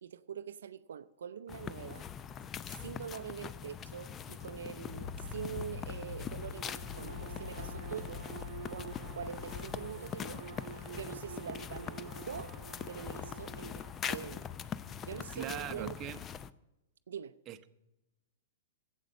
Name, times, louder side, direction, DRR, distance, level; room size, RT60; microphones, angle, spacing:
voice 1, 0.0-2.1 2.7-8.3 8.7-12.6 12.9-14.5 15.0-16.0 17.1-17.3, right 8 dB, 80° right, 0.5 m, -44 dB
sound 1, 1.5-16.5, left 8 dB, 25° left, 0.5 m, -42 dB
sound 2, 4.9-6.6 6.8-9.9, left 5 dB, 75° left, 1.2 m, -46 dB
Bowed string instrument, 6.5-14.0, right 8 dB, 60° right, 0.9 m, -49 dB
voice 2, 15.3-16.2 17.5-17.7, right 12 dB, 35° right, 0.7 m, -41 dB
11.5 x 8.2 x 6.4 m
hypercardioid pair, 120°, 0 cm